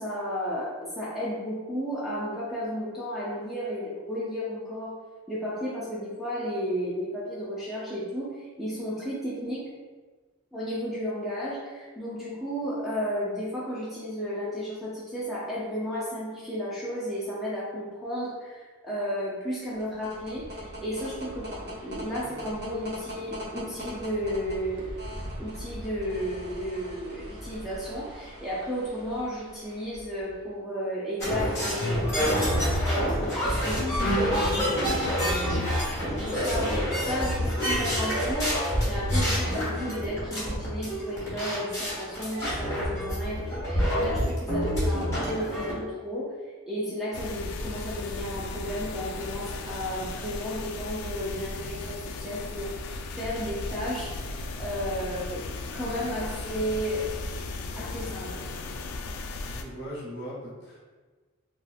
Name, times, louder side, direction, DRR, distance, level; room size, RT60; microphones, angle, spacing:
voice 1, 0.0-4.9 5.3-9.7 10.5-24.9 25.4-35.6 35.9-46.3 46.7-55.5 55.7-57.1 57.8-58.5, equal, ahead, -8 dB, 0.4 m, -33 dB
sound 1, 19.6-30.4, equal, 50° right, 0.8 m, -41 dB
sound 2, 31.2-45.7, equal, 15° left, 1.2 m, -27 dB
sound 3, 47.1-59.6, left 3 dB, 85° left, 0.3 m, -36 dB
voice 2, 59.4-60.8, equal, 50° left, -6 dB, 1.1 m, -39 dB
3.6 x 2.7 x 2.4 m, 1.4 s
head